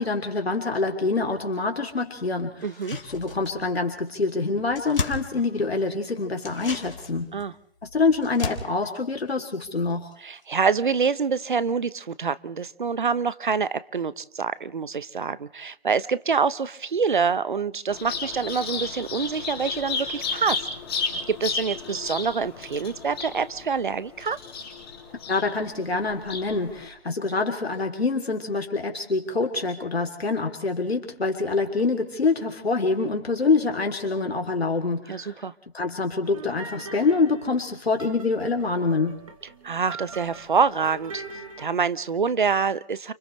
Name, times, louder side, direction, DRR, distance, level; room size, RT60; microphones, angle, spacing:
voice 1, 0.0-2.7 3.0-7.3 7.8-10.1 25.3-35.4 35.7-39.2, left 3 dB, 75° left, 4 dB, 3.3 m, -25 dB
sound 1, 2.6-3.8 4.1-4.2 4.4-6.0 6.4-10.1 10.4-10.5, left 3 dB, 60° left, 3.6 m, -36 dB
voice 2, 2.6-3.0 7.3-7.5 10.2-20.7 21.0-24.4 35.1-35.5 39.6-41.2 41.6-43.1, right 5 dB, 50° right, 16 dB, 1.0 m, -26 dB
Bird vocalization bird call bird song, 17.9-26.9, left 4 dB, 25° left, 4.4 m, -33 dB
sound 2, 36.2-41.6, right 3 dB, 35° right, 2.9 m, -42 dB
30.0 x 27.5 x 3.3 m, 0.62 s
figure-of-eight pair, 165°, 31 cm